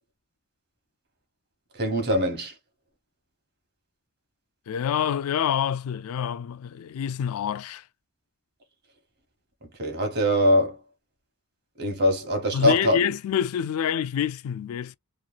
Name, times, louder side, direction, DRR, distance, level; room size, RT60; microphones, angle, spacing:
voice 1, 1.7-2.5 9.8-10.8 11.8-13.0, equal, 50° right, 1.1 m, -22 dB
voice 2, 4.7-7.8 12.5-15.0, left 8 dB, 75° left, 0.3 m, -27 dB
3.0 x 2.2 x 2.4 m
head